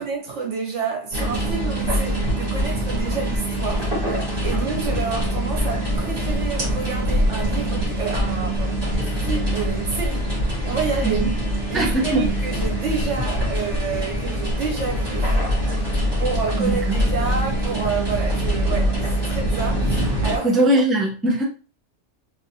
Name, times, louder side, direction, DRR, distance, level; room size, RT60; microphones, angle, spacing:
voice 1, 0.0-10.3 10.6-11.2 11.7-15.7 16.2-20.5, right 5 dB, 75° right, 1.3 m, -29 dB
sound 1, 1.1-20.4, equal, 50° right, 2.3 m, -24 dB
voice 2, 11.0-11.3 11.7-12.3 16.6-17.1 20.4-21.4, right 1 dB, ahead, 0.6 m, -21 dB
3.9 x 2.9 x 2.8 m
omnidirectional pair, 1.2 m